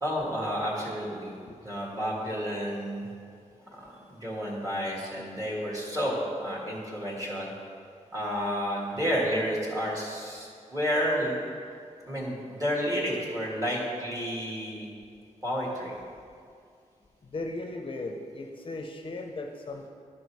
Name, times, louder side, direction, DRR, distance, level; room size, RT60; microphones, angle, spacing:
voice 1, 0.0-1.3 1.6-3.1 3.7-7.5 8.1-11.3 12.1-14.9 15.4-16.0, equal, 25° right, -4 dB, 1.8 m, -31 dB
voice 2, 17.2-19.9, left 2 dB, 45° left, 3 dB, 0.6 m, -37 dB
11.0 x 5.2 x 4.6 m, 2.3 s
wide cardioid pair, 175°, 13 cm